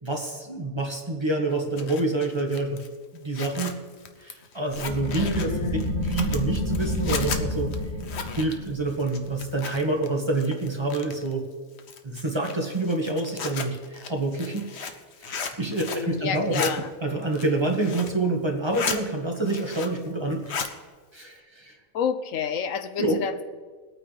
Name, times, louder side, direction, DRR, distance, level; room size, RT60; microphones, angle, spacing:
voice 1, 0.0-2.8 3.1-3.8 4.2-5.7 6.0-7.7 8.4-11.4 12.0-14.9 15.2-16.7 17.0-20.7 21.1-21.8 23.0-23.2, right 2 dB, 20° right, 1 dB, 1.4 m, -27 dB
Zipper (clothing), 1.5-10.1 10.3-11.3 11.8-16.1 16.3-16.7 17.2-18.2 18.5-19.0 19.3-20.1 20.3-20.7, left 5 dB, 55° left, 1.1 m, -35 dB
sound 1, 4.8-10.1, left 1 dB, 20° left, 2.6 m, -30 dB
voice 2, 5.2-5.8 15.7-16.9 21.9-23.4, left 7 dB, 75° left, 10 dB, 1.0 m, -30 dB
22.0 x 9.0 x 3.3 m, 1.5 s
omnidirectional pair, 1.4 m